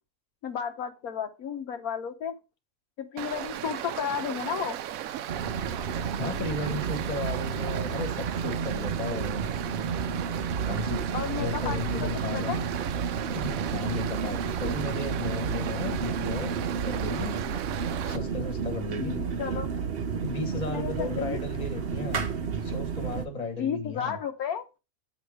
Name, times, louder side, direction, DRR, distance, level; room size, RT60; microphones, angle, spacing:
voice 1, 0.4-2.3 3.0-4.8 11.1-12.7 19.0-19.7 20.7-21.4 23.6-24.6, left 7 dB, 80° left, 1.4 m, -33 dB
Stream, 3.2-18.2, right 11 dB, 75° right, 1.0 m, -36 dB
sound 1, 5.3-23.3, right 6 dB, 50° right, 0.9 m, -31 dB
voice 2, 6.2-9.5 10.7-11.0 11.4-12.6 13.3-17.3 18.0-19.2 20.2-22.3 22.6-24.2, left 3 dB, 30° left, 1.4 m, -35 dB
8.7 x 3.9 x 4.8 m
omnidirectional pair, 1.5 m